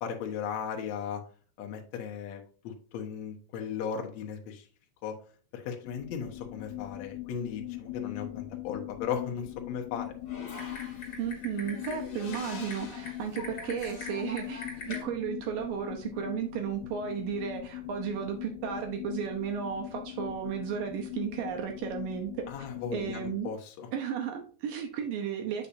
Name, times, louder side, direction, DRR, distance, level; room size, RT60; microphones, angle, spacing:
voice 1, 0.0-1.2 1.6-4.7 5.0-5.1 5.5-10.1 22.5-23.9, left 7 dB, 75° left, 2 dB, 1.6 m, -36 dB
sound 1, 5.8-23.4, left 16 dB, 90° left, 2.8 m, -41 dB
Typing, 10.2-15.0, left 3 dB, 40° left, 2.2 m, -42 dB
voice 2, 11.2-22.3 22.6-22.7 22.9-23.5 23.9-25.7, right 8 dB, 75° right, 3 dB, 2.1 m, -34 dB
8.5 x 5.8 x 2.6 m, 0.42 s
omnidirectional pair, 4.8 m